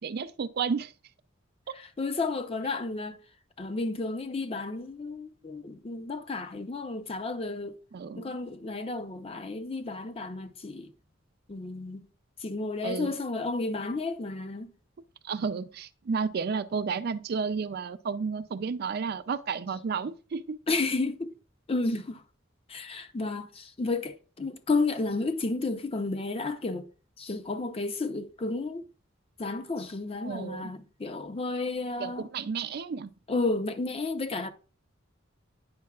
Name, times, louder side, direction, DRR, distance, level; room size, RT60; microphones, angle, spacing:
voice 1, 0.0-0.9 7.9-8.4 12.8-13.2 15.2-20.6 30.2-30.7 32.0-33.1, right 5 dB, 55° right, 0.4 m, -32 dB
voice 2, 2.0-3.2 3.6-7.8 8.1-10.9 11.5-12.1 12.4-14.7 20.7-21.3 21.7-22.2 22.7-26.9 27.2-28.8 29.4-32.3 33.3-34.5, left 3 dB, 30° left, 0.6 m, -32 dB
9.5 x 5.6 x 2.3 m
head